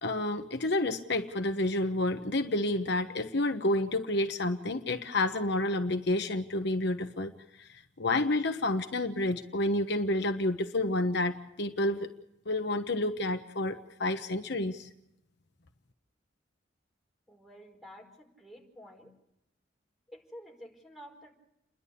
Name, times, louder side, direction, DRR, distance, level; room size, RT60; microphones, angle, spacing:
voice 1, 0.0-7.3 7.6-12.1 12.5-14.9, left 2 dB, 60° left, 6 dB, 1.1 m, -29 dB
voice 2, 17.3-19.1 20.1-21.3, equal, ahead, 1 dB, 4.8 m, -50 dB
30.0 x 11.5 x 8.5 m, 0.86 s
head